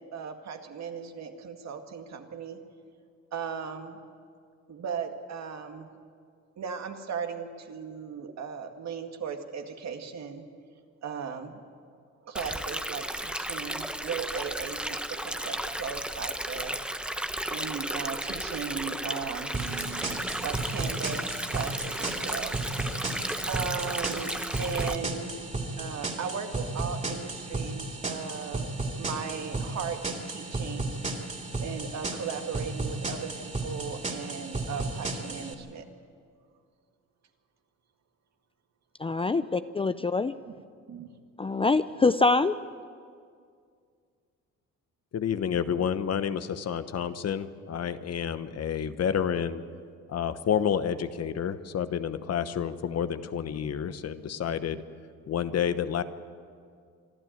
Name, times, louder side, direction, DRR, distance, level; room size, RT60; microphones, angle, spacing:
voice 1, 0.0-2.6 3.3-4.0 4.7-5.9 6.6-10.5 11.0-11.6 12.2-22.6 23.5-25.3 25.8-28.7 29.0-30.9 31.6-35.8 40.9-41.1, right 6 dB, 60° right, 5 dB, 2.0 m, -37 dB
Stream, 12.3-24.9, right 1 dB, 5° right, 0.9 m, -34 dB
sound 1, 19.5-35.5, right 2 dB, 25° right, 3.1 m, -34 dB
voice 2, 39.0-40.3 41.4-42.5, left 3 dB, 20° left, 12 dB, 0.5 m, -24 dB
voice 3, 45.1-49.6 50.1-54.8 55.3-56.0, left 8 dB, 55° left, 11 dB, 1.1 m, -29 dB
25.5 x 12.5 x 9.1 m, 2.2 s
cardioid pair, 90°, 30 cm